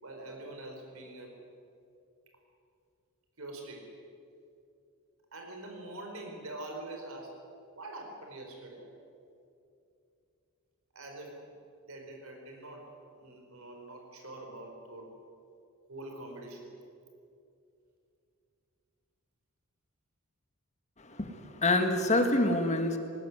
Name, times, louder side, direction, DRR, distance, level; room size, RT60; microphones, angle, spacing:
voice 1, 0.0-1.4 3.4-3.9 5.3-7.4 7.8-8.9 10.9-11.4 11.9-12.9 13.2-15.1 15.9-16.7, right 2 dB, 65° right, 2 dB, 4.6 m, -44 dB
voice 2, 21.0-23.0, left 2 dB, 30° left, 6 dB, 1.9 m, -27 dB
20.0 x 19.0 x 9.6 m, 2.6 s
head